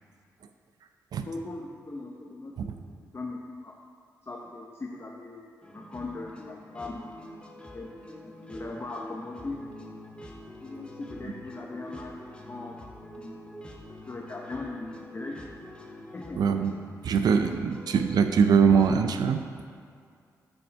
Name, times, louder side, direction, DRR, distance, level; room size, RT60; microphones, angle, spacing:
voice 1, 1.3-3.7 4.2-5.4 5.7-7.3 7.7-7.9 8.2-9.7 10.6-12.1 12.5-12.8 13.1-13.8 14.1-15.4 16.1-16.6, left 3 dB, 35° left, -1 dB, 0.8 m, -39 dB
sound 1, 5.6-19.1, equal, 15° left, 1.1 m, -45 dB
voice 2, 16.4-16.7 17.0-19.4, right 6 dB, 70° right, 7 dB, 0.5 m, -22 dB
7.0 x 4.6 x 5.2 m, 2.2 s
supercardioid pair, 50°, 7 cm